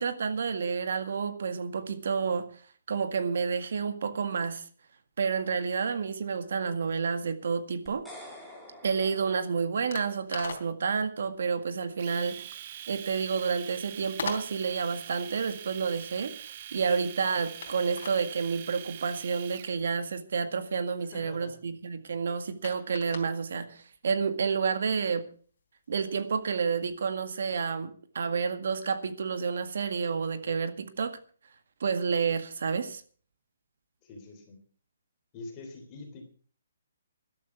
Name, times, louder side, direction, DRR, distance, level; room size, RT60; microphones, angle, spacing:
voice 1, 0.0-2.5 2.9-4.6 5.2-8.0 8.8-12.5 12.9-25.3 25.9-31.2 31.8-33.0, right 5 dB, 60° right, 10 dB, 1.9 m, -30 dB
sound 1, 7.5-27.3, left 5 dB, 50° left, 3.7 m, -46 dB
sound 2, 7.9-10.2, left 1 dB, ahead, 3.2 m, -48 dB
Domestic sounds home sounds, 12.0-19.8, right 11 dB, 35° right, 0.7 m, -44 dB
voice 2, 21.1-21.6 34.0-34.6 35.3-36.2, left 3 dB, 20° left, 4 dB, 3.4 m, -45 dB
14.0 x 12.0 x 6.0 m, 0.43 s
hypercardioid pair, 170°, 0 cm